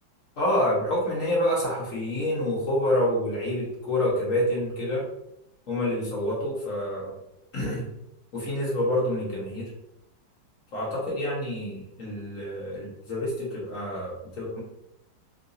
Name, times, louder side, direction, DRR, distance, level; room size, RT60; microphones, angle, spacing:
voice 1, 0.4-5.0 5.7-7.1 7.5-7.9 8.3-9.7 10.7-14.6, left 1 dB, 50° left, -5 dB, 1.3 m, -27 dB
3.8 x 2.6 x 2.5 m, 0.80 s
omnidirectional pair, 2.0 m